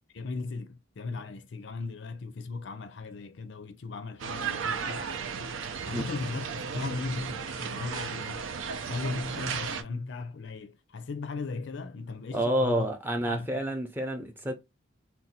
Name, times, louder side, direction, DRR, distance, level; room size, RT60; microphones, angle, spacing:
voice 1, 0.1-5.1 5.9-8.5 8.9-12.9 13.2-13.6, left 3 dB, 65° left, 0.4 m, -37 dB
sound 1, 4.2-9.8, right 6 dB, 75° right, 0.5 m, -35 dB
voice 2, 12.3-14.5, right 1 dB, 10° right, 0.5 m, -29 dB
2.7 x 2.2 x 4.0 m
head